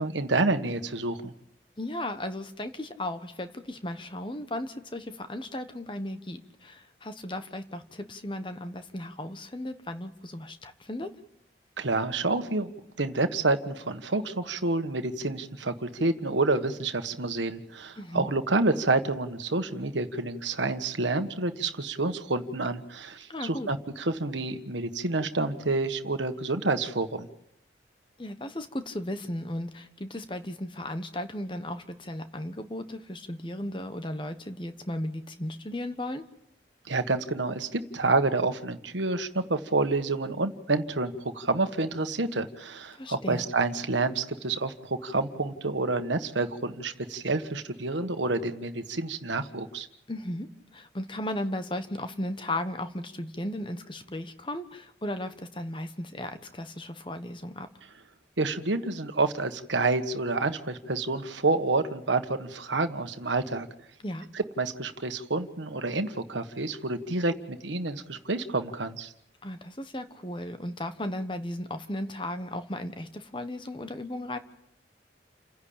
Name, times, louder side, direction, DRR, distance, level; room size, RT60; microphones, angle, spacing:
voice 1, 0.0-1.3 11.8-12.7 13.0-27.3 36.9-49.9 58.4-63.7 64.3-69.1, right 3 dB, 85° right, 8 dB, 1.4 m, -28 dB
voice 2, 1.8-11.1 18.0-18.3 23.3-23.7 28.2-36.2 42.9-43.4 50.1-57.7 64.0-64.3 69.4-74.4, left 1 dB, 25° left, 9 dB, 1.2 m, -35 dB
29.5 x 10.5 x 8.7 m, 0.79 s
head